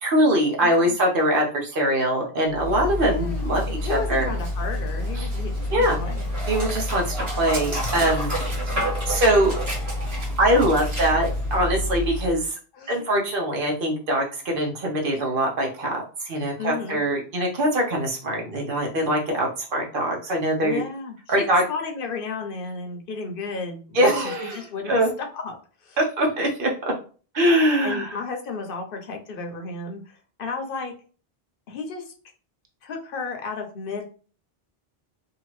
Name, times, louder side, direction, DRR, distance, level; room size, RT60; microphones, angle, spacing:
voice 1, 0.0-4.3 5.2-5.3 5.7-6.0 6.5-8.3 8.7-9.5 10.4-12.6 12.9-20.8 21.3-21.6 23.9-24.6 24.9-25.1 26.0-26.9 27.3-28.1, right 1 dB, 60° right, 0 dB, 1.0 m, -23 dB
voice 2, 0.6-1.0 3.1-6.3 12.7-13.1 16.6-17.0 20.6-24.1 24.4-25.5 25.8-26.0 27.8-30.9 31.7-32.1 32.8-34.0, left 4 dB, 65° left, 4 dB, 0.8 m, -33 dB
Dog, 2.5-12.4, left 1 dB, 75° right, 1.5 m, -28 dB
2.8 x 2.4 x 3.0 m, 0.39 s
omnidirectional pair, 1.0 m